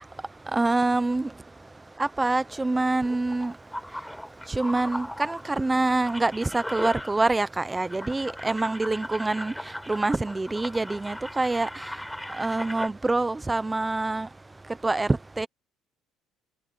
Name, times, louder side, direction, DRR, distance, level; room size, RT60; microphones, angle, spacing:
voice 1, 0.5-1.3 2.0-3.5 4.5-11.9 12.3-14.3 14.8-15.5, right 2 dB, 15° right, 0.9 m, -26 dB
sound 1, 2.5-7.5 7.8-12.9, left 1 dB, 5° left, 6.4 m, -38 dB
cardioid pair, 105°, 0 cm